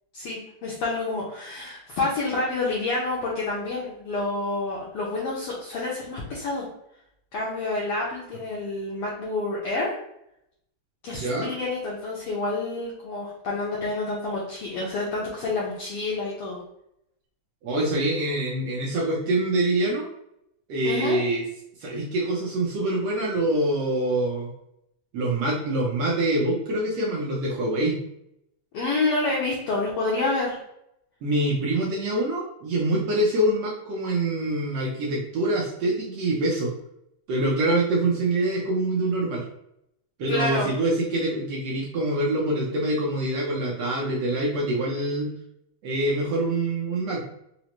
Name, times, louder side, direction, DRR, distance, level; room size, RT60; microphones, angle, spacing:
voice 1, 0.1-6.7 7.3-10.0 11.0-16.6 20.8-21.2 28.7-30.6 40.3-40.7, left 2 dB, 85° left, -4 dB, 1.3 m, -28 dB
voice 2, 11.1-11.5 17.6-20.1 20.7-21.4 21.8-24.5 25.1-28.0 31.2-36.7 37.3-39.4 40.2-45.3 45.8-47.2, right 1 dB, 75° right, -4 dB, 1.5 m, -25 dB
4.9 x 2.1 x 2.9 m, 0.79 s
omnidirectional pair, 3.4 m